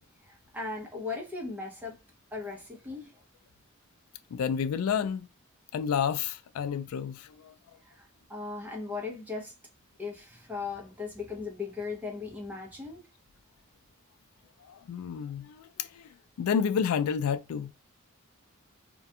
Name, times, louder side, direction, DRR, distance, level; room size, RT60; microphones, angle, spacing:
voice 1, 0.2-2.0 2.3-3.2 7.8-9.5 10.0-13.0, left 4 dB, 10° right, 0.7 m, -38 dB
voice 2, 4.3-5.3 5.7-7.5 14.7-16.1 16.4-17.7, left 7 dB, 85° left, 0.3 m, -30 dB
2.4 x 2.2 x 2.6 m
head